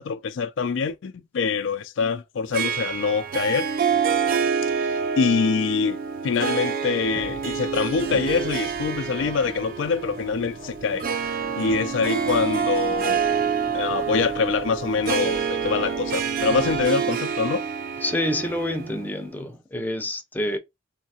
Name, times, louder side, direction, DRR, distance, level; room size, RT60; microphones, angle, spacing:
voice 1, 0.0-3.7 4.6-11.1 11.6-13.3 13.7-17.6, left 5 dB, 75° left, 0.4 m, -25 dB
Harp, 2.5-19.3, right 6 dB, 50° right, 0.4 m, -27 dB
sound 1, 7.0-16.8, equal, 80° right, 1.4 m, -43 dB
voice 2, 18.0-20.6, left 1 dB, 10° left, 0.6 m, -27 dB
3.3 x 2.8 x 2.8 m
head